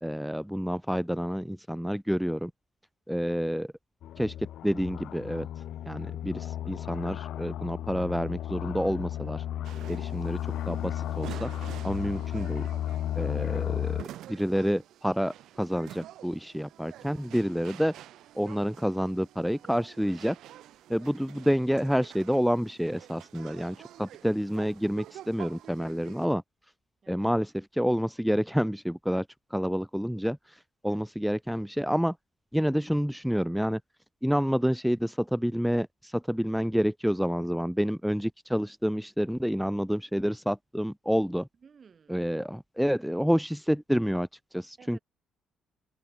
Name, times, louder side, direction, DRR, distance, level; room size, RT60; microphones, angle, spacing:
voice 1, 0.0-2.5 3.1-3.7 4.2-4.3 4.6-5.5 5.9-9.4 9.9-10.4 10.7-11.5 11.8-12.7 13.2-17.9 18.4-20.4 20.9-26.4 27.1-29.3 29.5-32.1 32.5-33.8 34.2-41.5 42.1-45.0, equal, ahead, 0.8 m, -28 dB
sound 1, 4.0-14.0, left 12 dB, 65° left, 0.8 m, -34 dB
sound 2, 9.6-26.3, right 13 dB, 70° right, 1.9 m, -48 dB
voice 2, 41.6-42.3 44.8-45.0, right 6 dB, 35° right, 4.7 m, -56 dB
cardioid pair, 135°, 0 cm